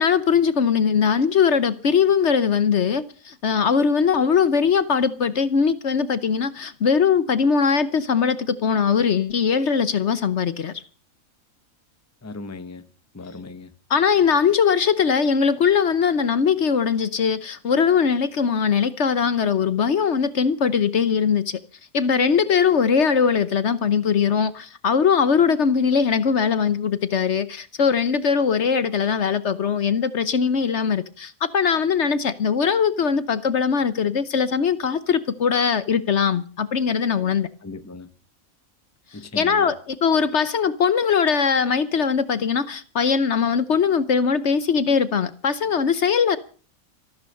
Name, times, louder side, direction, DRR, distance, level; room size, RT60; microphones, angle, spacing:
voice 1, 0.0-10.7 13.9-21.6 21.9-37.5 39.4-46.4, left 6 dB, 55° left, 1.1 m, -21 dB
voice 2, 12.2-12.8 13.1-13.7 37.6-38.1 39.1-39.7, left 3 dB, 15° left, 0.9 m, -37 dB
14.5 x 12.5 x 6.5 m
omnidirectional pair, 1.5 m